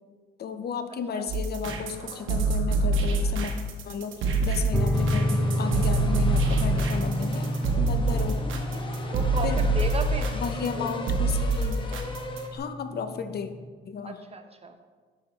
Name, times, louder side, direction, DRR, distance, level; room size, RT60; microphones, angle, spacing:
voice 1, 0.4-3.5 3.8-8.4 9.4-9.6 10.3-12.0 12.5-13.5 13.9-14.2, left 6 dB, 55° left, 9 dB, 0.6 m, -34 dB
sound 1, 1.3-12.6, right 2 dB, 80° right, 1.0 m, -26 dB
sound 2, 4.7-13.7, equal, 5° left, 0.8 m, -30 dB
sound 3, 4.9-12.5, left 2 dB, 25° left, 1.0 m, -39 dB
voice 2, 8.1-8.4 9.1-10.4 10.8-10.9 14.0-14.8, right 4 dB, 30° right, 7 dB, 0.7 m, -35 dB
6.1 x 5.8 x 5.2 m, 1.5 s
cardioid pair, 90°, 20 cm